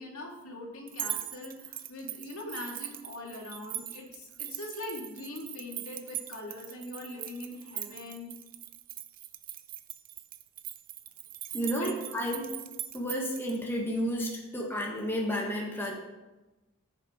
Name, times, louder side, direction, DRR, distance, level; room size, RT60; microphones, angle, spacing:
voice 1, 0.0-8.3 11.8-12.0, left 2 dB, 70° left, 0 dB, 2.3 m, -42 dB
sound 1, 0.9-13.6, right 13 dB, 40° right, 0.5 m, -41 dB
voice 2, 11.5-12.5 12.9-15.9, equal, 10° left, -1 dB, 1.6 m, -31 dB
14.5 x 6.7 x 4.4 m, 1.1 s
head